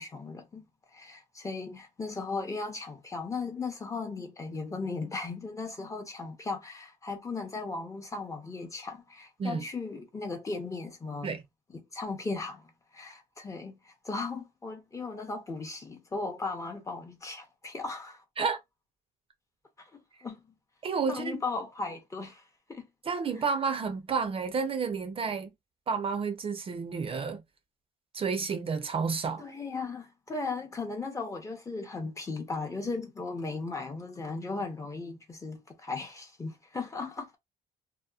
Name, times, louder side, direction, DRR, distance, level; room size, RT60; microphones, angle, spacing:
voice 1, 0.0-11.3 11.9-18.2 19.8-20.5 21.1-22.4 22.7-22.9 29.4-37.4, left 3 dB, 20° left, 0.6 m, -37 dB
voice 2, 20.8-21.4 23.0-25.5 25.9-27.4 28.1-29.4, right 5 dB, 35° right, 0.5 m, -30 dB
2.8 x 2.0 x 2.3 m
cardioid pair, 110°, 17 cm